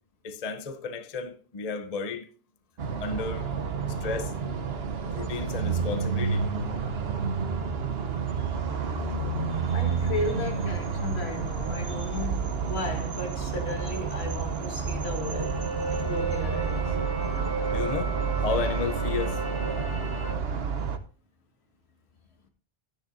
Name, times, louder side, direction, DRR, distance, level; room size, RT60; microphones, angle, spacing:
voice 1, 0.2-2.3 3.0-3.5 3.9-4.3 5.1-6.5 17.7-18.1 18.4-19.4, left 4 dB, 40° left, 0.8 m, -33 dB
sound 1, 2.8-21.0, right 5 dB, 70° right, 1.1 m, -30 dB
voice 2, 9.5-17.0, left 2 dB, 75° left, 2.0 m, -35 dB
sound 2, 14.8-20.3, right 2 dB, 50° right, 2.6 m, -34 dB
12.5 x 10.5 x 2.6 m
omnidirectional pair, 1.1 m